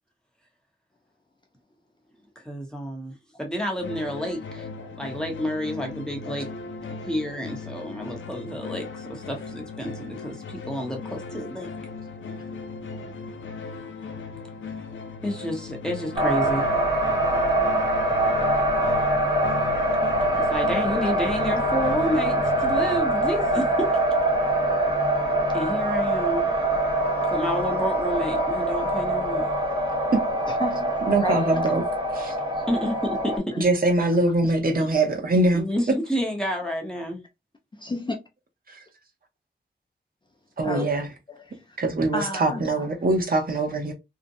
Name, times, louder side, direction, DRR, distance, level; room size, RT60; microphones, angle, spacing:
voice 1, 2.4-4.7 5.0-6.5 7.1-11.7 15.2-16.7 20.5-23.9 25.5-26.5 27.3-29.5 32.7-33.6 34.8-34.9 35.5-37.2, equal, 5° left, 0.8 m, -30 dB
sound 1, 3.8-23.0, left 4 dB, 85° left, 0.4 m, -38 dB
sound 2, 16.2-33.4, right 1 dB, 25° right, 1.1 m, -24 dB
voice 2, 30.5-31.8 32.4-32.6 33.5-33.6 37.7-38.1 40.6-40.9 41.3-41.8 42.1-42.9, left 1 dB, 25° left, 0.4 m, -33 dB
voice 3, 31.1-31.8 32.1-32.3 33.6-35.6 40.6-41.1 41.8-43.9, right 2 dB, 50° right, 0.8 m, -22 dB
2.7 x 2.1 x 2.6 m
wide cardioid pair, 105°, 19 cm